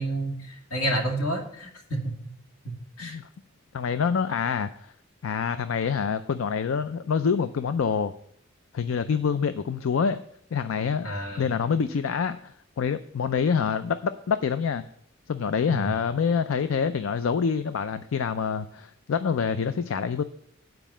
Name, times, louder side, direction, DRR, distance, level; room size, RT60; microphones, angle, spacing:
voice 1, 0.0-2.2 2.6-3.2 11.0-11.4 15.7-15.9, right 1 dB, 90° left, 1 dB, 2.2 m, -30 dB
voice 2, 3.7-4.9 5.2-8.1 8.7-10.2 10.5-11.1 11.4-14.8 15.3-20.2, left 6 dB, 70° left, 12 dB, 0.4 m, -26 dB
9.1 x 4.6 x 7.4 m, 0.69 s
head